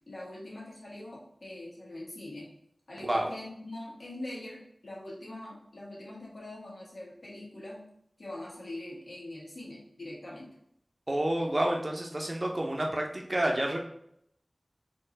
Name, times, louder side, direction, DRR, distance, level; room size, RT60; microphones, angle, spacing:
voice 1, 0.1-2.5 2.9-7.8 8.2-10.6, left 1 dB, 80° left, -5 dB, 1.6 m, -43 dB
voice 2, 11.1-13.8, right 1 dB, 45° right, 1 dB, 0.8 m, -29 dB
4.4 x 2.8 x 4.0 m, 0.72 s
wide cardioid pair, 45°, 0 cm